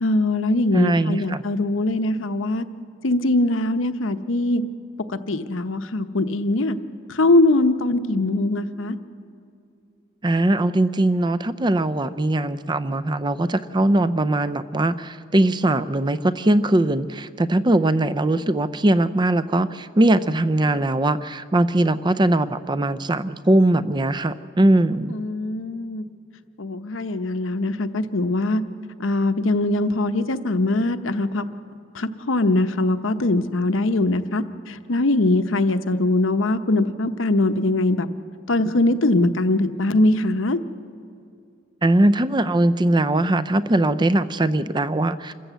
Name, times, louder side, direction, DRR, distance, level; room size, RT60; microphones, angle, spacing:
voice 1, 0.0-2.7 3.0-4.6 5.1-6.8 7.1-9.0 25.1-26.0 26.6-28.6 29.0-31.5 31.9-38.1 38.5-40.6, left 2 dB, 80° left, 9 dB, 0.9 m, -21 dB
voice 2, 0.7-1.4 10.2-25.2 41.8-45.3, right 1 dB, 20° right, 14 dB, 0.5 m, -20 dB
27.0 x 14.0 x 8.1 m, 2.5 s
head